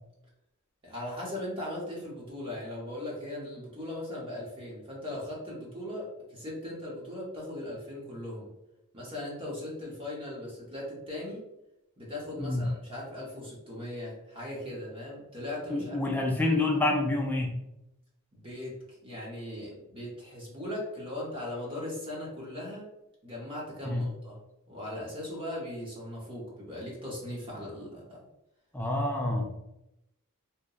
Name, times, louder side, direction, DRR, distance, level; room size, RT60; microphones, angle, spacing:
voice 1, 0.8-8.5 8.9-11.4 12.0-16.0 16.4-16.6 18.3-22.9 23.2-24.3 24.7-28.2, left 1 dB, 25° right, -5 dB, 0.7 m, -39 dB
voice 2, 12.4-12.7 15.7-17.5 23.9-24.0 28.7-29.6, left 2 dB, 10° left, 0 dB, 0.3 m, -28 dB
2.7 x 2.1 x 2.3 m, 0.89 s
head